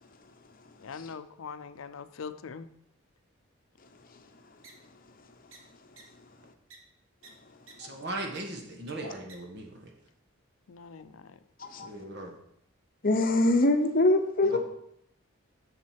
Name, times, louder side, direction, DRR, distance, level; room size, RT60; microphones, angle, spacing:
voice 1, 0.8-2.7 10.7-11.4, left 5 dB, 90° left, 12 dB, 0.5 m, -42 dB
sound 1, 4.6-4.7 5.5-5.6 6.0-6.1 6.7-6.8 7.2-7.3 7.7-7.8 8.1-8.4 8.9-9.0 9.3-9.4, right 4 dB, 80° right, 1.4 m, -50 dB
voice 2, 7.8-9.9 11.8-12.3 14.4-14.6, right 2 dB, 55° right, 2 dB, 1.5 m, -38 dB
voice 3, 11.6-11.9 13.0-14.6, left 2 dB, 45° left, 7 dB, 0.8 m, -24 dB
7.4 x 6.7 x 4.5 m, 0.75 s
head